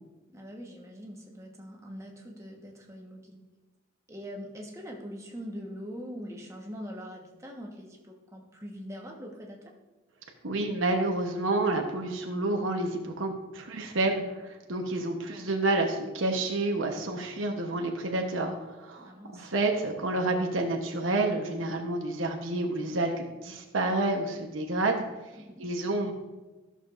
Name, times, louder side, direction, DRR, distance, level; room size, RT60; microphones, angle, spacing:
voice 1, 0.3-3.4 4.1-9.7 19.0-19.5 25.4-25.5, equal, 15° right, -1 dB, 1.2 m, -42 dB
voice 2, 10.4-25.0 25.6-26.1, right 2 dB, 80° right, 2 dB, 1.0 m, -29 dB
14.0 x 6.7 x 2.5 m, 1.2 s
head